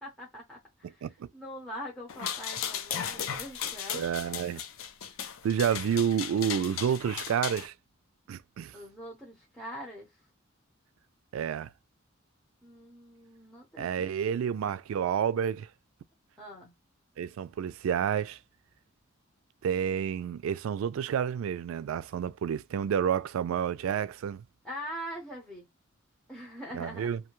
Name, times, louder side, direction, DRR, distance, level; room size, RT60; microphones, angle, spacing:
voice 1, 0.0-1.1 1.3-4.0 8.7-10.1 12.6-14.8 16.4-16.7 24.6-25.7 26.3-27.2, equal, 5° left, 0.8 m, -43 dB
voice 2, 0.8-1.3 3.9-4.6 5.4-7.7 8.3-8.8 11.3-11.7 13.8-15.7 17.2-18.4 19.6-24.4 26.7-27.2, right 8 dB, 85° right, 0.3 m, -30 dB
sound 1, 2.1-7.7, left 8 dB, 80° left, 0.4 m, -36 dB
2.7 x 2.2 x 2.9 m
head